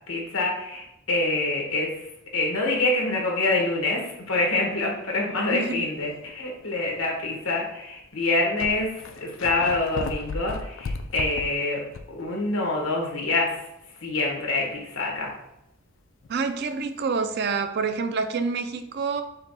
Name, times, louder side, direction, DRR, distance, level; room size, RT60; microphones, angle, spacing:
voice 1, 0.1-1.9 2.3-11.8 12.1-13.6 14.0-15.3, left 2 dB, 85° left, 0 dB, 1.3 m, -26 dB
voice 2, 5.5-5.8 16.3-19.2, right 4 dB, 55° right, 8 dB, 0.4 m, -27 dB
sound 1, 6.0-6.3 7.0-7.1 8.0-8.1 8.2-12.2 12.6-12.7 16.2-16.4, left 3 dB, 65° left, 0.4 m, -35 dB
5.5 x 2.3 x 4.0 m, 0.83 s
head